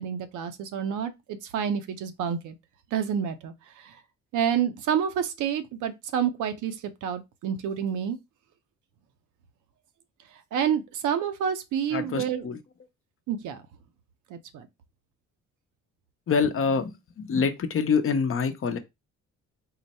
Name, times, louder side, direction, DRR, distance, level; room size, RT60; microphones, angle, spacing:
voice 1, 0.0-2.6 2.9-4.0 4.3-8.2 10.5-12.4 13.3-13.6 14.3-14.7, right 8 dB, 80° right, 0.7 m, -29 dB
voice 2, 11.9-12.6 16.3-18.8, left 5 dB, 45° left, 0.7 m, -26 dB
3.9 x 2.2 x 4.0 m
cardioid pair, 90°, 30 cm